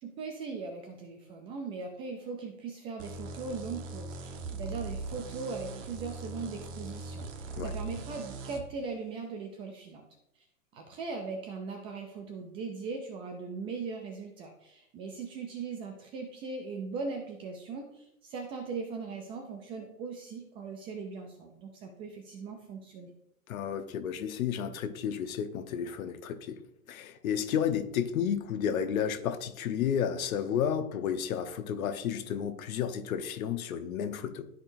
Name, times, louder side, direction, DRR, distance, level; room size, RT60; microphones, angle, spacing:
voice 1, 0.0-10.1 10.7-23.1, right 4 dB, 15° right, 0.3 m, -39 dB
sound 1, 3.0-8.6, right 3 dB, 60° right, 1.4 m, -40 dB
voice 2, 23.5-26.6 26.9-34.5, left 8 dB, 70° left, 1.1 m, -32 dB
13.0 x 4.4 x 2.6 m
hypercardioid pair, 125°, 43 cm